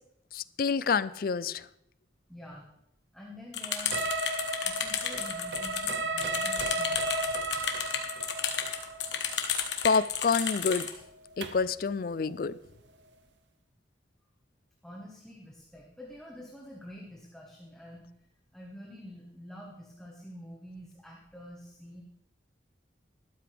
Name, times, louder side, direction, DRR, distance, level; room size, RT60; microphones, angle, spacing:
voice 1, 0.3-1.6 9.8-10.9 11.4-12.5, left 5 dB, 50° left, 17 dB, 0.4 m, -28 dB
voice 2, 2.3-2.7 3.1-4.0 4.6-7.3 14.8-18.1 18.5-22.0, equal, 5° left, -3 dB, 1.3 m, -47 dB
sound 1, 3.5-10.9, left 8 dB, 70° left, 1.4 m, -32 dB
sound 2, 3.9-11.7, right 2 dB, 70° right, 0.8 m, -34 dB
12.5 x 12.5 x 3.4 m, 0.80 s
head